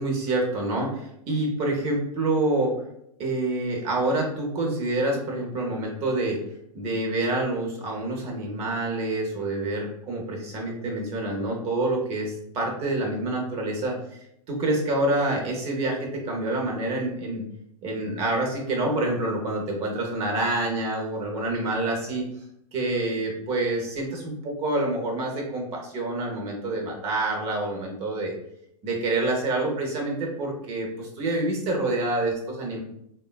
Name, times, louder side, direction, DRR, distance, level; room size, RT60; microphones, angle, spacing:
voice 1, 0.0-2.7 3.2-6.4 6.7-13.9 14.5-17.4 17.8-22.2 22.7-28.3 28.8-32.8, right 2 dB, 30° right, 0 dB, 0.8 m, -27 dB
3.5 x 2.3 x 2.3 m, 0.75 s
hypercardioid pair, 125°, 20 cm